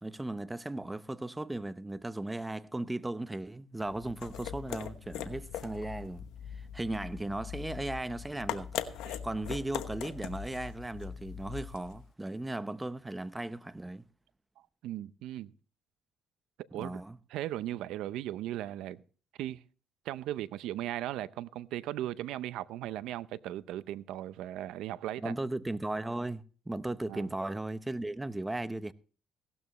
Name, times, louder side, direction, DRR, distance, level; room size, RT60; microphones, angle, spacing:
voice 1, 0.0-14.1 16.7-17.2 25.2-28.9, right 2 dB, 10° right, 0.8 m, -37 dB
sound 1, 3.8-12.0, left 9 dB, 90° left, 1.0 m, -41 dB
voice 2, 14.8-15.5 16.7-17.0 17.3-19.0 19.4-19.6 20.0-25.3 27.1-27.3, right 13 dB, 85° right, 0.6 m, -37 dB
17.0 x 12.5 x 3.0 m
cardioid pair, 90°, 0 cm